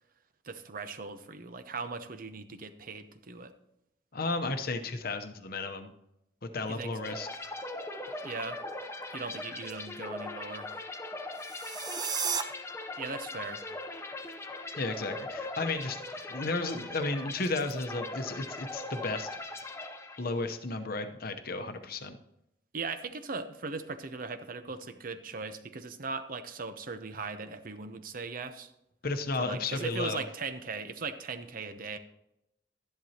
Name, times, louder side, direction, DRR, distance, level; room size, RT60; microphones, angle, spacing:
voice 1, 0.4-3.5 6.7-7.0 8.2-8.6 9.1-10.7 13.0-13.6 22.7-28.7 29.4-32.0, right 4 dB, 50° right, 10 dB, 0.8 m, -39 dB
voice 2, 4.1-5.9 6.4-7.3 14.8-19.3 20.2-22.2 29.0-30.2, left 3 dB, 55° left, 7 dB, 0.9 m, -33 dB
sound 1, 7.0-20.6, left 2 dB, 15° left, 0.7 m, -40 dB
sound 2, 11.3-12.4, right 6 dB, 25° right, 0.6 m, -33 dB
12.5 x 10.5 x 2.9 m, 0.85 s
head